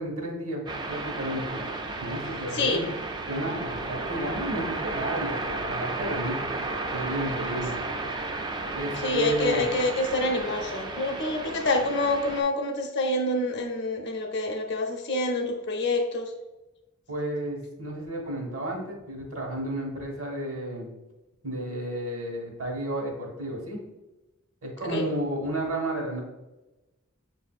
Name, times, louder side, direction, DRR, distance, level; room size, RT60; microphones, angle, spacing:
voice 1, 0.0-1.6 2.0-2.9 3.3-6.5 6.9-7.7 8.7-9.6 17.1-20.9 21.4-23.8 24.6-26.2, right 1 dB, 75° right, -2 dB, 1.2 m, -32 dB
sound 1, 0.7-12.4, right 3 dB, 20° right, 0.3 m, -33 dB
voice 2, 9.0-16.3 24.8-25.1, left 2 dB, 55° left, 2 dB, 0.6 m, -27 dB
6.2 x 2.6 x 2.4 m, 1.0 s
head